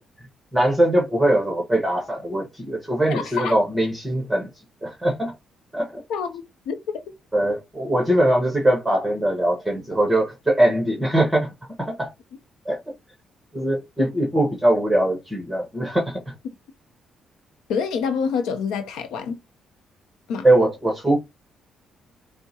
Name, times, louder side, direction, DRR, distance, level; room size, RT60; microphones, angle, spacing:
voice 1, 0.5-4.5 4.8-5.3 5.7-6.0 7.3-11.5 11.8-12.1 12.6-12.8 13.5-16.3 20.4-21.2, right 1 dB, 5° right, 1.3 m, -21 dB
voice 2, 3.1-3.5 6.1-6.8 17.7-19.4 20.3-20.5, left 6 dB, 90° left, 0.7 m, -27 dB
4.5 x 2.1 x 2.8 m
cardioid pair, 90°, 0 cm